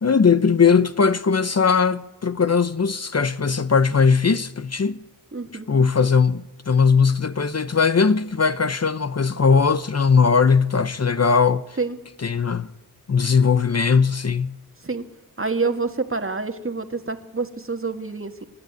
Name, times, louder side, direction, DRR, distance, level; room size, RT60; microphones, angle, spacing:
voice 1, 0.0-5.0 5.7-11.6 12.2-12.7 13.1-14.6, left 5 dB, 45° left, 0.7 m, -19 dB
voice 2, 5.3-5.7 11.8-12.0 14.8-15.0 15.4-18.5, right 4 dB, 35° right, 1.8 m, -27 dB
26.5 x 12.0 x 9.5 m
wide cardioid pair, 60°, 36 cm